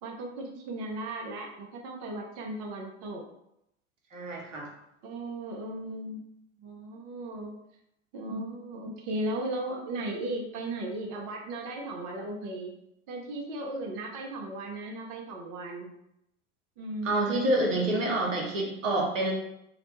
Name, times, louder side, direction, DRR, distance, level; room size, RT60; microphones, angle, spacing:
voice 1, 0.0-3.2 5.0-6.3 6.6-7.5 8.1-12.7 13.1-15.9 16.8-17.5, right 1 dB, 50° right, 1 dB, 0.6 m, -36 dB
voice 2, 4.1-4.7 17.0-19.3, right 1 dB, 85° right, -2 dB, 0.8 m, -27 dB
2.4 x 2.0 x 3.0 m, 0.80 s
hypercardioid pair, 85°, 37 cm